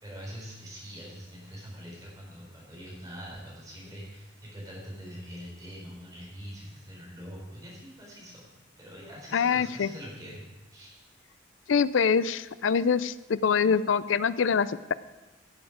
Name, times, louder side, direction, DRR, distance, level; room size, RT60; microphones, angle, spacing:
voice 1, 0.0-8.5 8.8-10.4 10.7-11.0, equal, 20° right, -5 dB, 4.5 m, -44 dB
voice 2, 9.3-9.9 11.7-14.9, left 6 dB, 70° left, 16 dB, 0.4 m, -24 dB
15.0 x 7.2 x 5.0 m, 1.2 s
head